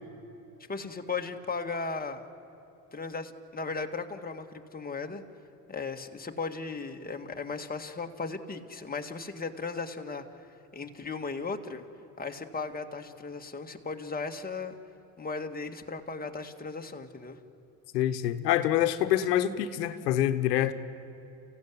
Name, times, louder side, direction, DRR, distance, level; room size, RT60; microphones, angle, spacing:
voice 1, 0.7-2.2 2.9-5.2 5.7-10.3 10.7-11.8 12.2-14.8 15.2-17.4, left 4 dB, 20° left, 4 dB, 1.9 m, -36 dB
voice 2, 17.9-20.7, left 12 dB, 85° left, 10 dB, 1.2 m, -26 dB
30.0 x 16.0 x 9.7 m, 2.9 s
hypercardioid pair, 75°, 47 cm